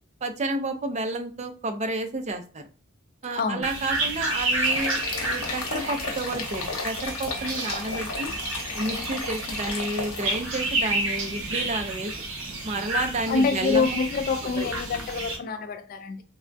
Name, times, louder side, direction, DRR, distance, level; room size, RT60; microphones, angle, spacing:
voice 1, 0.2-2.7 3.2-8.3 8.7-12.1 12.6-14.0 14.4-14.7, right 2 dB, 30° right, 0.4 m, -30 dB
sound 1, 3.6-15.4, right 2 dB, 60° right, 0.8 m, -30 dB
sound 2, 4.6-10.8, left 4 dB, 85° left, 0.8 m, -34 dB
voice 2, 13.3-16.2, left 4 dB, 40° left, 0.3 m, -26 dB
3.3 x 2.2 x 2.6 m
head